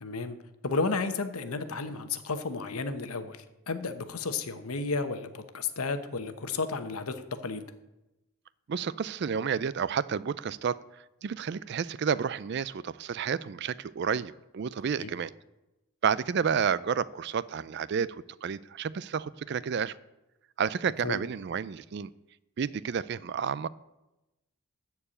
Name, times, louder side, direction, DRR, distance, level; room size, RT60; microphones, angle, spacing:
voice 1, 0.0-0.4 0.6-7.6 15.0-15.1 21.0-21.2, left 4 dB, 80° left, 9 dB, 1.0 m, -32 dB
voice 2, 8.7-10.8 11.2-15.3 16.0-18.2 18.4-19.9 20.6-22.1 22.6-23.7, right 7 dB, 50° right, 19 dB, 0.3 m, -30 dB
13.5 x 4.7 x 8.8 m, 0.98 s
head